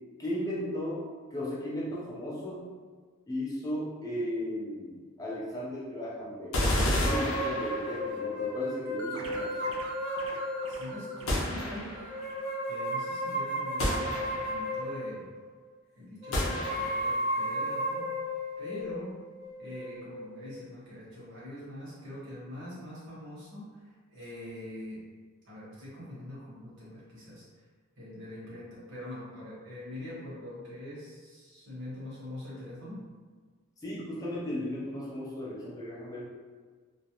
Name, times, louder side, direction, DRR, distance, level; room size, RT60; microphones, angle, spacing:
voice 1, 0.2-2.7 3.3-6.6 7.0-9.6 33.8-36.3, left 1 dB, 15° left, -6 dB, 0.4 m, -35 dB
sound 1, 6.5-8.2 11.3-12.1 13.8-14.7 16.3-17.2, left 1 dB, 70° left, 0.6 m, -30 dB
sound 2, 7.0-11.2 11.9-15.4 16.2-20.6, equal, 35° left, 0.9 m, -34 dB
sound 3, 9.0-13.3, right 1 dB, 75° right, 0.4 m, -44 dB
voice 2, 10.7-12.0 12.7-15.4 16.0-18.1 18.6-19.1 19.6-25.0 25.5-27.4 28.0-33.1, left 1 dB, 55° right, -9 dB, 1.0 m, -43 dB
2.4 x 2.0 x 2.8 m, 1.5 s
head